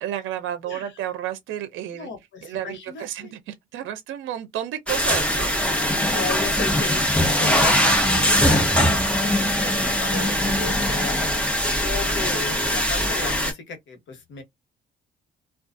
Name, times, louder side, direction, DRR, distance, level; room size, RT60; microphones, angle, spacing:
voice 1, 0.0-2.1 2.4-5.5, right 11 dB, 80° right, 0.5 m, -31 dB
voice 2, 1.9-3.3 6.1-14.4, left 5 dB, 70° left, 1.1 m, -34 dB
sound 1, 4.9-13.5, equal, 5° left, 0.9 m, -21 dB
2.4 x 2.3 x 2.5 m
cardioid pair, 90°, 20 cm